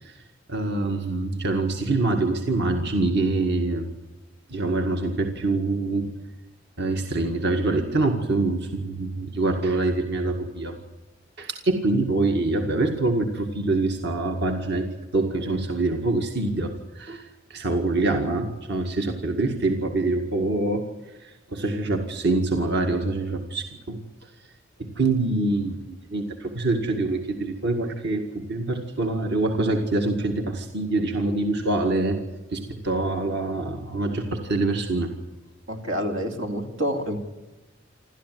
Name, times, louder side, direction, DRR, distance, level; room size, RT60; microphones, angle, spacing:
voice 1, 0.5-3.9 4.5-6.1 6.8-10.7 11.4-14.9 15.1-20.9 21.2-24.0 24.8-32.2 32.5-35.1, right 2 dB, 60° right, 3 dB, 2.0 m, -25 dB
voice 2, 35.7-37.2, equal, 85° right, 3 dB, 3.2 m, -28 dB
27.5 x 13.5 x 9.4 m, 1.1 s
head